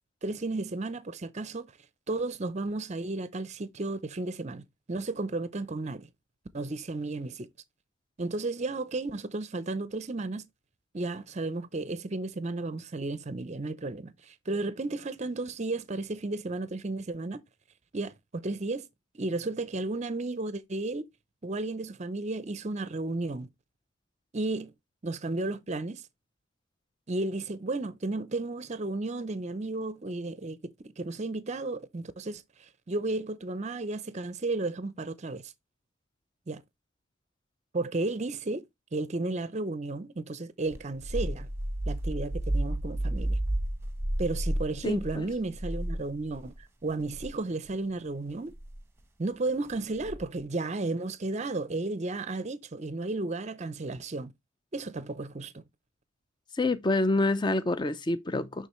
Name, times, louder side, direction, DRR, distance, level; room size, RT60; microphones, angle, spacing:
voice 1, 0.2-1.7 2.1-6.1 6.5-7.5 8.2-10.4 10.9-17.4 17.9-18.9 19.2-21.1 21.4-23.5 24.3-24.7 25.0-26.0 27.1-30.6 30.8-35.5 36.5-36.6 37.7-38.6 38.9-41.5 41.9-43.4 44.2-46.5 46.8-48.5 49.2-54.3 54.7-55.6, right 2 dB, 30° right, 0.5 m, -33 dB
sound 1, 40.7-46.6 47.0-47.4 48.5-48.8 50.0-50.4, right 1 dB, 10° right, 1.0 m, -32 dB
voice 2, 44.8-45.3 56.5-58.7, left 2 dB, 20° left, 0.5 m, -27 dB
11.0 x 3.8 x 3.0 m
head